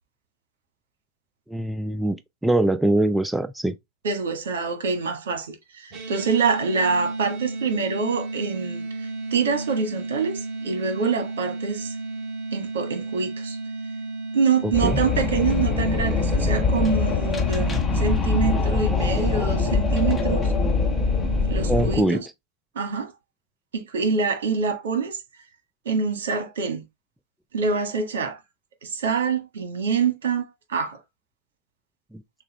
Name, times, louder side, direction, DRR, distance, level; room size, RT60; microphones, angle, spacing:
voice 1, 1.5-2.2 2.4-3.8 14.8-15.0 21.7-22.2 32.1-32.2, right 1 dB, 5° right, 0.4 m, -22 dB
voice 2, 4.0-11.9 12.5-13.6 14.3-20.5 21.5-22.3 22.7-23.1 23.7-25.2 25.8-26.8 27.5-28.4 28.8-31.0, right 5 dB, 70° right, 1.4 m, -25 dB
sound 1, 5.9-22.2, right 3 dB, 40° right, 2.8 m, -34 dB
Wind, 14.7-22.0, left 4 dB, 20° left, 1.1 m, -23 dB
6.5 x 2.4 x 3.0 m
hypercardioid pair, 100°, 0 cm